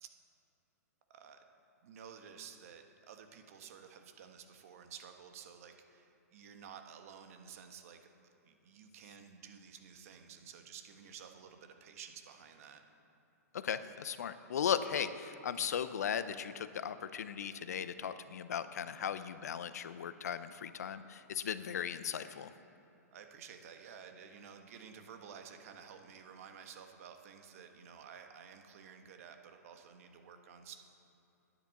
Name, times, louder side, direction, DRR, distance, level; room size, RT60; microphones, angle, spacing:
voice 1, 1.1-1.4 1.8-8.1 8.4-12.8 23.1-30.8, right 7 dB, 55° right, 6 dB, 1.5 m, -52 dB
voice 2, 13.5-22.5, left 8 dB, 70° left, 12 dB, 0.7 m, -37 dB
10.5 x 10.5 x 7.3 m, 2.8 s
hypercardioid pair, 120°, 9 cm